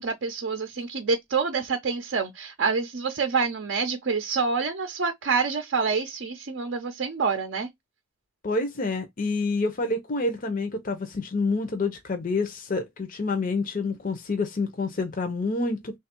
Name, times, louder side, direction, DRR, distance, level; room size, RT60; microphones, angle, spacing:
voice 1, 0.0-7.7, right 5 dB, 55° right, 0.5 m, -27 dB
voice 2, 8.4-15.9, left 3 dB, 40° left, 0.6 m, -28 dB
3.3 x 2.4 x 4.3 m
head